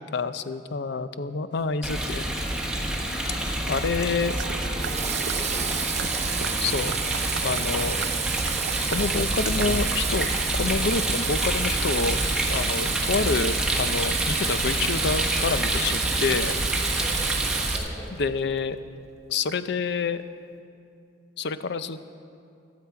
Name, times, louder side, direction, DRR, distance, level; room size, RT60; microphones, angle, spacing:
voice 1, 0.0-2.2 3.7-4.4 6.6-6.9 7.4-8.0 8.9-12.2 12.5-16.5 18.2-18.8 19.3-20.2 21.4-22.0, left 4 dB, 65° left, 12 dB, 0.6 m, -27 dB
Rain, 1.8-17.8, right 1 dB, 5° right, 1.3 m, -28 dB
sound 1, 4.4-10.2, right 6 dB, 70° right, 0.4 m, -38 dB
voice 2, 4.6-5.7 10.6-10.9 17.0-18.1, equal, 20° left, -3 dB, 2.4 m, -42 dB
Water tap faucet / Sink (filling or washing), 4.8-18.2, right 8 dB, 35° right, 0.8 m, -31 dB
23.0 x 8.4 x 4.7 m, 2.5 s
head